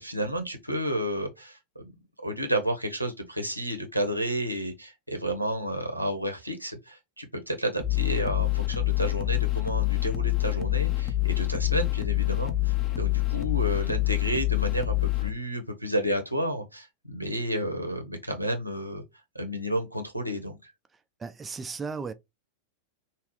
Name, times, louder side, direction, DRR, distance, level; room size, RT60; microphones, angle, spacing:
voice 1, 0.0-1.9 2.2-19.0 19.3-20.7, equal, 90° right, 1.1 m, -31 dB
sound 1, 7.8-15.3, left 17 dB, 30° left, 0.7 m, -26 dB
voice 2, 21.2-22.1, right 5 dB, 15° right, 0.4 m, -35 dB
5.7 x 2.4 x 3.3 m
figure-of-eight pair, 90°, 0 cm